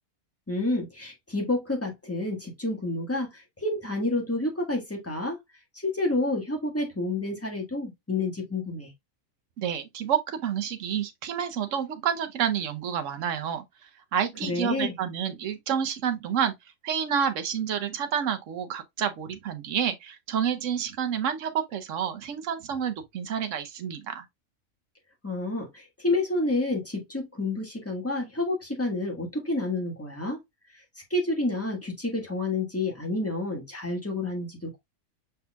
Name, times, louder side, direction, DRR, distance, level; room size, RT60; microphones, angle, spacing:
voice 1, 0.5-5.4 5.8-8.9 14.5-14.9 25.2-30.4 31.1-34.8, left 2 dB, 10° left, 1.5 m, -29 dB
voice 2, 9.6-16.5 16.8-24.2, right 8 dB, 70° right, 1.2 m, -29 dB
5.5 x 4.2 x 2.3 m
omnidirectional pair, 1.4 m